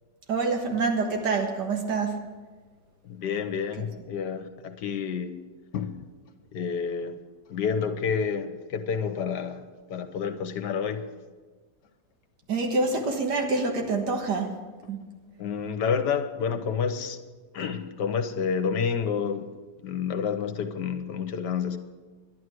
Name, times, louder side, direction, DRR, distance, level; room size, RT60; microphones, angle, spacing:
voice 1, 0.3-2.2 3.8-3.9 12.5-14.6 14.9-15.0, right 3 dB, 75° right, 3 dB, 2.2 m, -26 dB
voice 2, 3.0-5.3 5.7-5.9 6.5-7.2 7.5-11.0 15.4-17.2 17.5-19.4 19.8-21.8, left 6 dB, 75° left, 9 dB, 1.5 m, -29 dB
11.5 x 11.0 x 6.3 m, 1.4 s
omnidirectional pair, 1.9 m